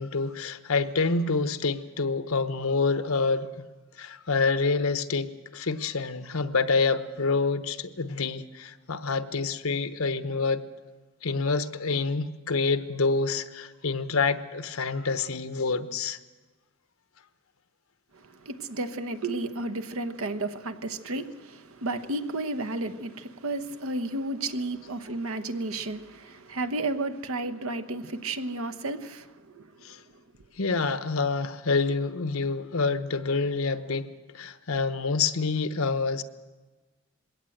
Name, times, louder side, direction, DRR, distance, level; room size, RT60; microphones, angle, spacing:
voice 1, 0.0-3.6 4.0-10.6 11.2-16.2 29.8-30.0 30.6-34.1 34.3-36.2, left 4 dB, 85° left, 1.0 m, -27 dB
voice 2, 18.4-29.3 29.5-29.6, right 2 dB, 85° right, 1.0 m, -32 dB
21.0 x 17.5 x 7.9 m
head